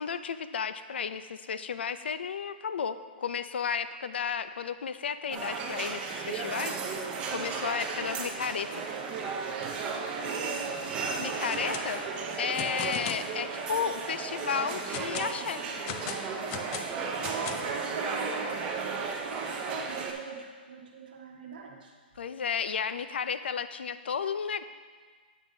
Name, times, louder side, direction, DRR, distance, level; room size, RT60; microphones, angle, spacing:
voice 1, 0.0-8.8 11.2-12.0 12.4-15.6 22.2-24.6, left 7 dB, 80° left, 12 dB, 0.5 m, -33 dB
sound 1, 5.3-20.1, right 5 dB, 20° right, 0.6 m, -34 dB
voice 2, 10.2-10.7 12.7-12.8 17.2-21.9, right 5 dB, 55° right, 0 dB, 1.4 m, -41 dB
sound 2, 11.4-11.9 12.2-13.3 13.8-13.9 14.4-15.3 15.9-17.8, left 8 dB, 20° left, 0.4 m, -38 dB
9.3 x 9.1 x 2.7 m, 1.5 s
hypercardioid pair, 165°, 6 cm